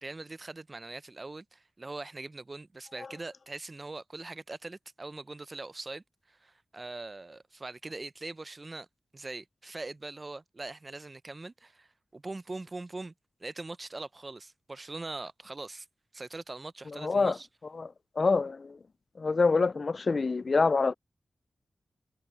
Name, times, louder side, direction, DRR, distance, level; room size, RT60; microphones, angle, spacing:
voice 1, 0.0-8.9 9.1-13.1 13.4-15.9 16.1-17.5, right 2 dB, 40° right, 0.7 m, -42 dB
voice 2, 17.0-17.3 17.8-17.9 18.2-18.7 19.2-20.9, left 4 dB, 60° left, 0.3 m, -25 dB
cardioid pair, 40°, 0 cm